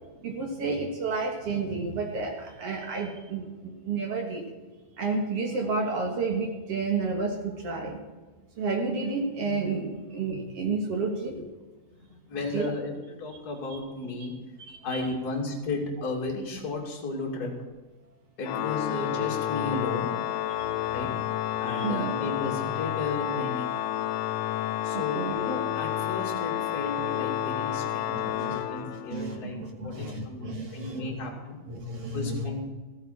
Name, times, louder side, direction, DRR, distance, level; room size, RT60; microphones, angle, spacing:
voice 1, 0.2-4.5 5.0-8.0 8.6-11.5 12.5-12.7 13.7-13.8 14.7-15.0 20.6-20.7 21.7-22.1 24.9-25.3 28.1-28.6 29.1-31.1 31.7-32.7, right 4 dB, 50° right, 2 dB, 2.0 m, -31 dB
voice 2, 12.0-12.9 13.2-14.3 14.8-17.5 18.4-20.1 20.9-21.1 21.6-23.9 24.8-31.6 32.1-32.7, left 2 dB, 30° left, -1 dB, 2.5 m, -34 dB
Organ, 18.4-29.3, left 12 dB, 80° left, 2.0 m, -30 dB
15.0 x 14.0 x 4.3 m, 1.3 s
omnidirectional pair, 4.3 m